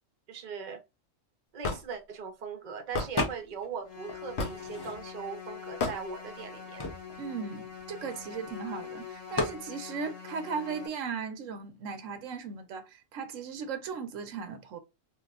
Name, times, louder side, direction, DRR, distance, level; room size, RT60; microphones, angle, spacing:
voice 1, 0.3-0.8 1.5-6.9, right 6 dB, 45° right, 0.8 m, -40 dB
Hammer / Wood, 1.6-1.8 2.9-3.1 4.4-4.7 5.8-6.0, left 3 dB, 65° left, 1.0 m, -30 dB
sound 1, 3.2-3.7 4.1-5.3 6.0-6.1 6.3-8.5 9.4-9.7, left 2 dB, 25° left, 0.6 m, -35 dB
sound 2, 3.9-10.9, left 7 dB, 85° left, 1.7 m, -44 dB
voice 2, 7.2-14.8, right 5 dB, 85° right, 1.1 m, -37 dB
3.1 x 3.0 x 2.3 m
omnidirectional pair, 1.3 m